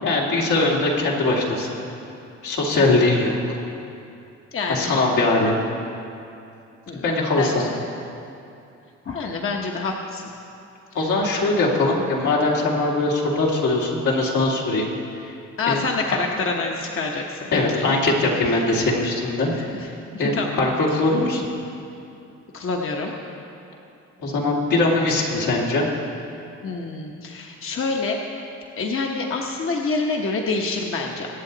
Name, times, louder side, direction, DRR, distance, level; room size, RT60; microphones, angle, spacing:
voice 1, 0.0-1.8 2.4-3.6 4.7-5.6 7.0-7.7 10.9-14.9 15.1-15.3 15.7-15.8 17.5-19.5 19.8-19.9 20.2-21.5 24.2-25.9, left 2 dB, 80° left, -4 dB, 2.5 m, -21 dB
voice 2, 4.5-4.9 6.9-7.1 7.3-7.7 9.0-10.2 11.1-11.2 15.6-17.5 17.7-18.0 19.6-19.9 20.1-20.7 22.5-23.1 26.6-28.2 28.8-31.3, left 3 dB, 45° left, 0 dB, 1.2 m, -27 dB
23.5 x 8.2 x 4.0 m, 2.7 s
cardioid pair, 90°, 30 cm